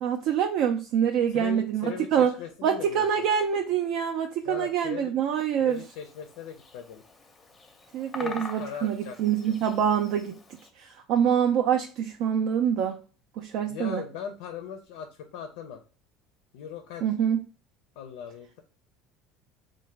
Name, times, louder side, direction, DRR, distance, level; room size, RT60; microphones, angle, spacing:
voice 1, 0.0-2.3 2.6-5.8 7.9-10.3 10.8-13.0 13.4-14.0 17.0-17.4, right 8 dB, 65° right, 4 dB, 0.3 m, -25 dB
voice 2, 1.3-3.3 4.4-5.1 5.6-7.0 8.2-9.6 13.7-15.8 16.5-17.0 18.0-18.6, left 8 dB, 85° left, 6 dB, 0.4 m, -39 dB
Bird vocalization bird call bird song, 5.7-10.7, left 3 dB, 20° left, 0.5 m, -44 dB
3.1 x 2.1 x 3.2 m, 0.36 s
supercardioid pair, 120°, 0 cm